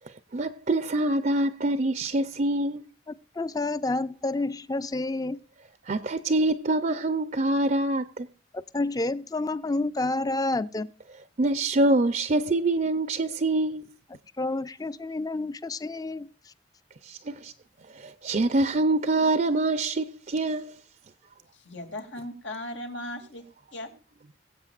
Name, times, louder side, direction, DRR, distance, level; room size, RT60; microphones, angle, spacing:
voice 1, 0.3-2.8 5.9-8.3 11.4-13.8 17.0-17.5 17.9-20.7, right 2 dB, 45° right, 0.5 m, -25 dB
voice 2, 3.4-5.4 8.5-10.9 14.4-16.3, left 2 dB, 20° left, 0.5 m, -29 dB
voice 3, 21.5-23.9, left 1 dB, 90° left, 2.6 m, -38 dB
22.0 x 8.2 x 2.4 m
head